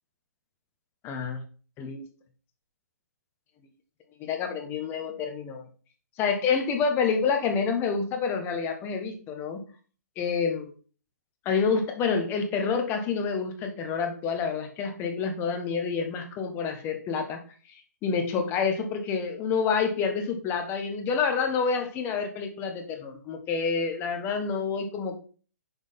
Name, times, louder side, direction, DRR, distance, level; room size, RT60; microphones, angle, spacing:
voice 1, 1.0-1.4 1.8-2.1 4.2-5.6 6.2-9.6 10.2-10.7 11.4-17.4 18.0-25.2, left 5 dB, 25° left, 5 dB, 1.2 m, -28 dB
6.2 x 3.8 x 5.2 m, 0.39 s
figure-of-eight pair, 130°, 9 cm